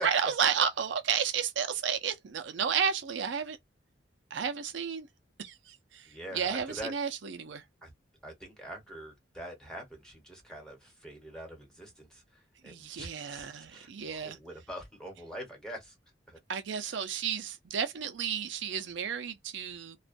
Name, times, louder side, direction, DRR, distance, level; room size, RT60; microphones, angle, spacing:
voice 1, 0.0-3.6 4.3-5.1 5.4-6.1 6.3-7.6 12.6-14.4 16.5-20.0, right 7 dB, 80° right, 0.5 m, -32 dB
voice 2, 6.1-6.9 7.8-7.9 8.2-12.2 12.6-15.9 16.3-16.4, right 1 dB, 5° left, 1.0 m, -44 dB
2.4 x 2.2 x 2.4 m
head